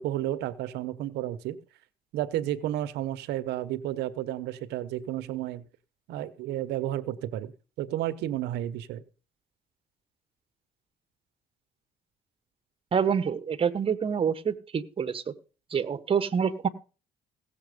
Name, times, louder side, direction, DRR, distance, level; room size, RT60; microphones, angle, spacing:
voice 1, 0.0-1.6 2.1-5.6 6.1-7.5 7.8-9.0, right 13 dB, 85° right, 13 dB, 1.0 m, -32 dB
voice 2, 12.9-15.2 15.7-16.7, right 7 dB, 35° right, 12 dB, 1.3 m, -27 dB
17.0 x 7.2 x 5.2 m, 0.36 s
cardioid pair, 110°, 17 cm